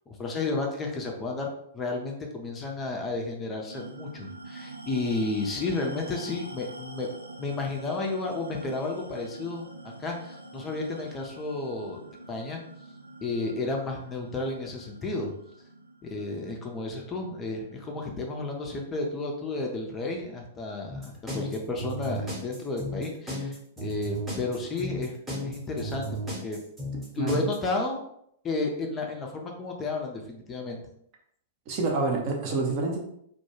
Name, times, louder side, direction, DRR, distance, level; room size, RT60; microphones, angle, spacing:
voice 1, 0.1-7.1 7.4-12.0 12.3-12.6 13.2-15.3 16.0-25.1 25.4-26.1 26.4-26.6 27.2-28.0 28.4-30.8, left 3 dB, 20° left, 1 dB, 0.4 m, -32 dB
sound 1, 3.7-18.5, right 2 dB, 90° right, 0.3 m, -45 dB
sound 2, 20.9-27.6, equal, 10° right, 0.8 m, -34 dB
voice 2, 31.7-33.0, right 3 dB, 40° right, 1 dB, 0.6 m, -27 dB
2.2 x 2.1 x 3.0 m, 0.71 s
figure-of-eight pair, 100°, 0 cm